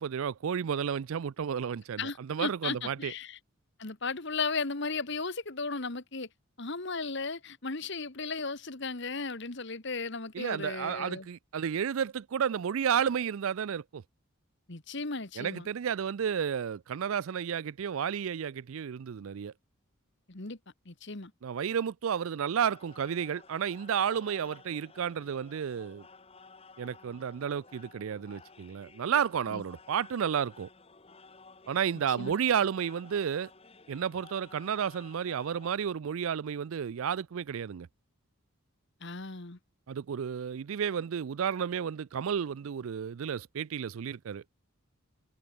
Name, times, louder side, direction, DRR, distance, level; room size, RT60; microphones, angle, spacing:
voice 1, 0.0-3.1 10.3-14.0 15.4-19.5 21.4-26.0 26.8-30.7 31.7-33.5 33.9-37.9 39.9-44.4, right 8 dB, 70° right, 0.4 m, -32 dB
voice 2, 2.0-3.4 3.8-6.3 6.6-11.3 14.7-15.7 20.3-20.6 20.8-21.3 29.5-29.6 32.2-32.3 39.0-39.6, left 4 dB, 55° left, 1.6 m, -35 dB
sound 1, 22.6-35.7, left 4 dB, 25° left, 1.5 m, -55 dB
head